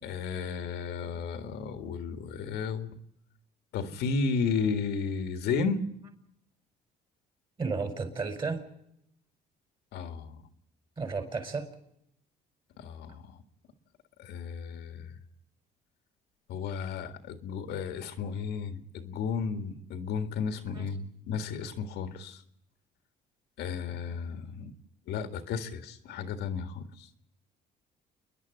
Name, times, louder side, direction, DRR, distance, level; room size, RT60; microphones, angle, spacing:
voice 1, 0.0-2.9 3.7-5.8 9.9-10.4 12.8-13.2 14.2-15.2 16.5-22.4 23.6-24.7 25.1-26.8, left 5 dB, 80° left, 8 dB, 1.9 m, -33 dB
voice 2, 7.6-8.6 11.0-11.7 20.7-20.9, right 4 dB, 30° right, 6 dB, 4.5 m, -33 dB
28.5 x 11.0 x 9.6 m, 0.76 s
cardioid pair, 110°, 17 cm